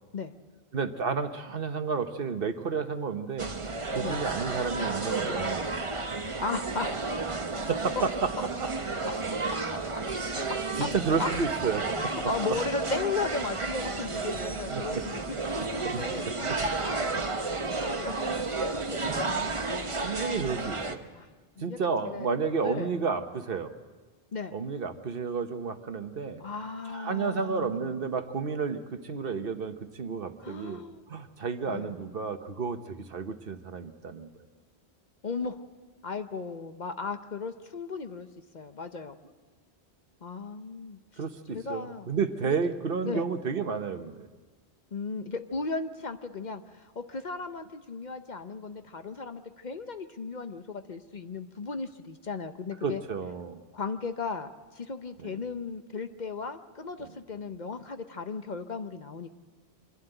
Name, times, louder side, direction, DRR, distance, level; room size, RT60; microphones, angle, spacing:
voice 1, 0.7-3.5 3.9-5.7 7.7-8.7 10.8-12.1 14.7-15.0 15.5-16.0 16.5-16.9 20.0-21.0 21.6-23.7 24.5-26.4 26.9-30.8 31.1-34.3 41.2-44.3 52.8-53.6 55.2-55.4, right 5 dB, 60° right, 8 dB, 1.2 m, -31 dB
sound 1, 3.4-21.0, right 3 dB, 30° right, 1.0 m, -32 dB
voice 2, 6.4-7.3 10.3-10.4 11.2-11.3 11.9-15.2 15.6-16.3 16.8-18.3 18.9-20.0 21.1-21.8 22.0-22.3 22.6-22.9 24.3-24.6 26.4-27.9 30.4-31.1 31.7-32.0 35.2-35.6 36.0-38.3 38.5-39.2 40.2-41.0 41.5-42.1 42.4-42.5 43.0-43.3 44.9-53.0 53.7-59.3, left 4 dB, 45° left, 8 dB, 0.9 m, -36 dB
25.0 x 11.5 x 10.0 m, 1.3 s
omnidirectional pair, 1.1 m